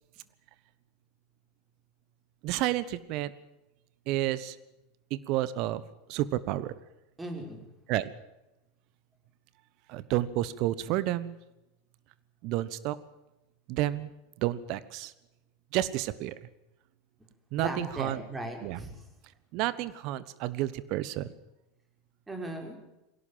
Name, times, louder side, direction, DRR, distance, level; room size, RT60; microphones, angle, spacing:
voice 1, 2.4-3.3 4.1-4.6 5.1-5.8 6.1-6.7 7.9-8.1 9.9-11.4 12.4-13.0 13.7-14.1 14.4-15.1 15.7-16.4 17.5-18.2 18.6-18.8 19.5-21.3, right 14 dB, 55° right, 17 dB, 1.2 m, -30 dB
voice 2, 7.2-7.6 17.5-19.0 22.3-22.8, right 1 dB, 15° right, 3 dB, 5.7 m, -37 dB
21.0 x 17.5 x 7.6 m, 0.93 s
hypercardioid pair, 85°, 0 cm